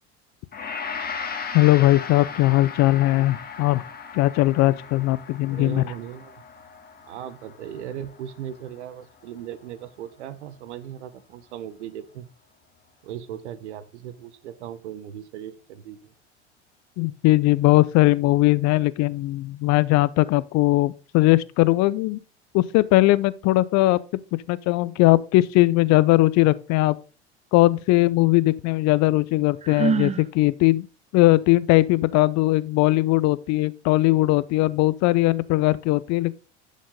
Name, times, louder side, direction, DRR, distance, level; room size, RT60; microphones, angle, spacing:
Gong, 0.5-9.7, left 6 dB, 25° left, 1.7 m, -37 dB
voice 1, 1.5-3.8 4.1-5.8 17.0-22.2 22.5-24.0 24.5-27.0 27.5-30.9 31.1-36.3, left 18 dB, 50° left, 0.6 m, -19 dB
voice 2, 5.5-6.4 7.0-12.3 13.0-16.1, right 10 dB, 75° right, 0.9 m, -37 dB
Sigh, 29.6-30.3, right 6 dB, 20° right, 0.7 m, -24 dB
11.0 x 5.3 x 3.7 m
hypercardioid pair, 75°, 35 cm